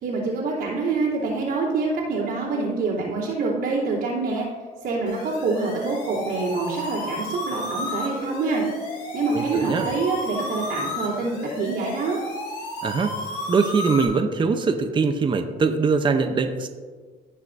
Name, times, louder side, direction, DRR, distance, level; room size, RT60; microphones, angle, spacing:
voice 1, 0.0-4.5 4.8-8.6 9.1-12.2, right 3 dB, 75° right, -9 dB, 2.8 m, -26 dB
sound 1, 5.1-14.1, left 2 dB, 90° left, 2.7 m, -32 dB
voice 2, 9.3-9.9 12.8-13.1 13.5-16.7, right 4 dB, 30° right, 6 dB, 0.7 m, -22 dB
16.5 x 5.8 x 2.6 m, 1.5 s
cardioid pair, 110°, 17 cm